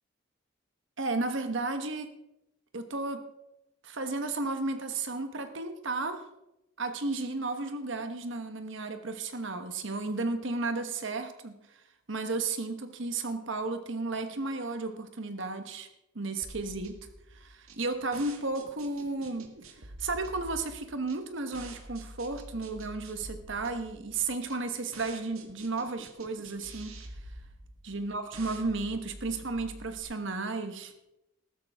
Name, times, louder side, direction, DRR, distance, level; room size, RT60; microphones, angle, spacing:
voice 1, 1.0-2.1 2.7-3.2 3.8-6.2 6.8-11.6 12.1-15.9 16.1-17.0 17.3-19.5 20.0-26.9 27.8-30.9, right 3 dB, 65° right, 7 dB, 1.2 m, -33 dB
sound 1, 16.4-30.0, right 1 dB, 85° right, 1.7 m, -47 dB
14.0 x 13.0 x 3.6 m, 0.88 s
head